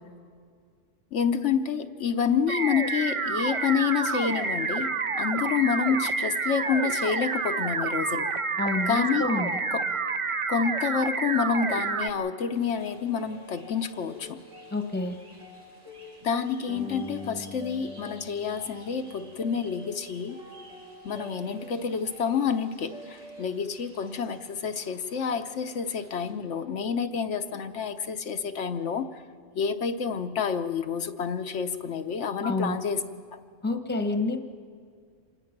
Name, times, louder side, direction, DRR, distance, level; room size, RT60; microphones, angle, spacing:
voice 1, 1.1-8.3 8.9-9.2 9.7-9.8 10.5-14.4 16.2-20.4 21.0-29.2 29.5-33.0, left 6 dB, 75° left, 7 dB, 1.1 m, -28 dB
sound 1, 2.5-12.1, right 4 dB, 40° right, 0.5 m, -29 dB
voice 2, 8.6-9.6 14.7-15.2 32.4-32.8 33.6-34.4, left 2 dB, 10° left, 6 dB, 1.0 m, -28 dB
sound 2, 12.5-26.3, left 1 dB, 85° right, 8.0 m, -46 dB
26.5 x 20.0 x 5.9 m, 2.2 s
omnidirectional pair, 1.3 m